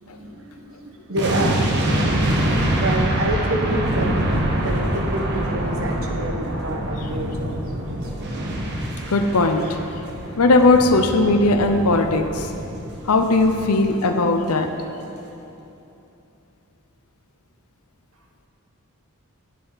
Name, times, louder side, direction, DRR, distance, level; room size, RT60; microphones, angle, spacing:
voice 1, 0.0-2.1 2.7-4.3 4.6-8.1, right 1 dB, 65° right, 2 dB, 1.4 m, -28 dB
sound 1, 1.2-14.3 14.6-14.8, right 1 dB, 50° right, 1.5 m, -25 dB
voice 2, 9.1-9.8 10.4-12.5 13.1-14.7, left 2 dB, 85° left, 6 dB, 0.7 m, -18 dB
19.0 x 7.5 x 4.1 m, 2.9 s
head